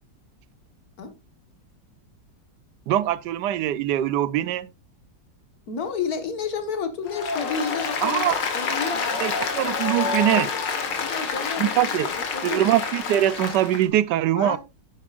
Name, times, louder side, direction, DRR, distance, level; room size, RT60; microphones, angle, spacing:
voice 1, 2.9-4.7 8.0-8.4 9.2-10.5 11.6-12.1 12.4-14.6, right 12 dB, 75° right, 1.2 m, -22 dB
voice 2, 5.7-9.1 11.0-12.7 14.4-14.6, left 6 dB, 60° left, 1.9 m, -31 dB
Applause, 7.1-13.8, left 5 dB, 90° left, 2.2 m, -28 dB
9.9 x 9.6 x 2.4 m
omnidirectional pair, 1.9 m